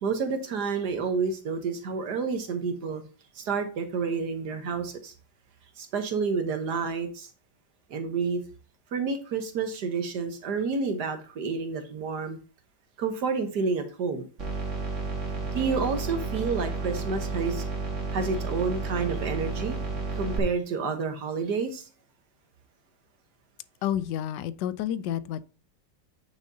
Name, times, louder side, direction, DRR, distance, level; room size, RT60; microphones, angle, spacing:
voice 1, 0.0-3.0 3.3-5.1 5.8-7.3 7.9-8.4 8.9-12.4 13.0-14.3 15.5-17.6 18.1-19.8 20.1-21.8, right 5 dB, 65° right, 1.6 m, -29 dB
sound 1, 14.4-20.4, right 3 dB, 40° right, 2.0 m, -32 dB
voice 2, 23.8-25.4, left 10 dB, 75° left, 1.2 m, -30 dB
9.0 x 6.4 x 2.7 m
omnidirectional pair, 2.0 m